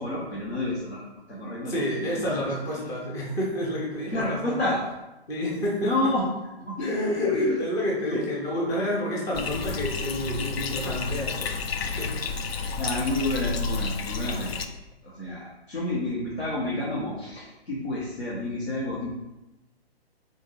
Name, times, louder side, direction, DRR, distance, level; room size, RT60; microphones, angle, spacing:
voice 1, 0.0-2.5 4.1-4.8 5.8-6.2 6.6-7.6 8.0-8.2 10.8-10.9 12.5-14.6 15.0-19.1, left 2 dB, 90° left, -7 dB, 1.4 m, -29 dB
voice 2, 1.7-4.6 5.3-6.0 6.8-12.3, equal, 10° left, -4 dB, 0.5 m, -29 dB
Bathtub (filling or washing), 9.3-14.7, left 5 dB, 70° left, 0.5 m, -30 dB
3.6 x 2.7 x 3.9 m, 0.98 s
hypercardioid pair, 135°, 31 cm